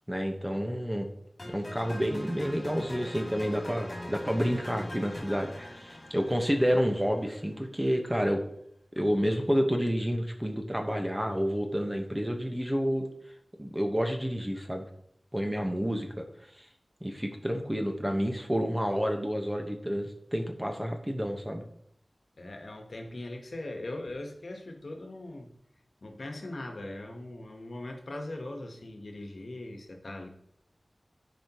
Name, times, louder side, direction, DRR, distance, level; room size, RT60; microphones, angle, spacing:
voice 1, 0.1-1.1 1.4-8.4 9.0-13.1 13.6-14.8 15.3-16.3 16.6-16.7 17.0-21.6, equal, 15° right, 3 dB, 1.2 m, -29 dB
sound 1, 1.4-7.5, left 1 dB, 50° left, 2.9 m, -42 dB
voice 2, 22.4-25.5 26.0-30.3, left 1 dB, 80° left, 3 dB, 1.2 m, -40 dB
13.0 x 5.1 x 3.0 m, 0.73 s
wide cardioid pair, 55°, 0 cm